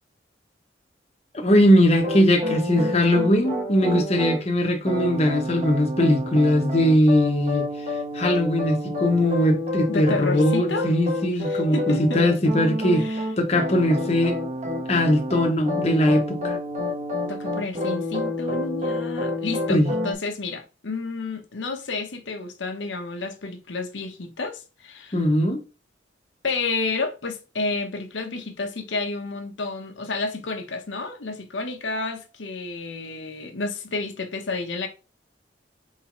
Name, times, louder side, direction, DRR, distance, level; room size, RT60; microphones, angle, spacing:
voice 1, 1.3-7.7 8.1-14.4 14.9-16.6 19.7-19.9 25.1-25.6, left 1 dB, 35° left, 0.8 m, -20 dB
sound 1, 2.0-4.4 4.8-20.1, left 1 dB, 40° right, 1.3 m, -29 dB
voice 2, 9.9-10.9 11.4-12.2 12.9-13.2 17.3-25.2 26.4-34.9, left 3 dB, 85° left, 0.9 m, -30 dB
4.2 x 3.8 x 3.0 m
head